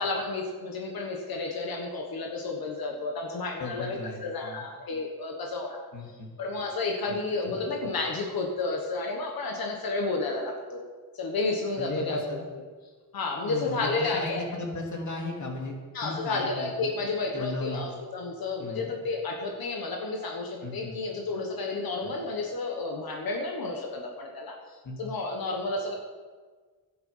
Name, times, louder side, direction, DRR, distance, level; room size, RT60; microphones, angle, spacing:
voice 1, 0.0-5.9 6.4-10.8 11.1-12.6 13.1-14.5 15.9-25.9, left 3 dB, 90° left, 1 dB, 1.5 m, -31 dB
voice 2, 3.6-4.6 5.9-6.3 7.5-7.6 11.8-12.4 13.5-15.7 16.0-16.9 17.3-17.9 18.6-18.9 20.6-21.0 22.0-22.1 24.8-25.0, left 2 dB, 55° left, 1 dB, 2.6 m, -36 dB
11.5 x 9.4 x 5.6 m, 1.5 s
wide cardioid pair, 95°, 35 cm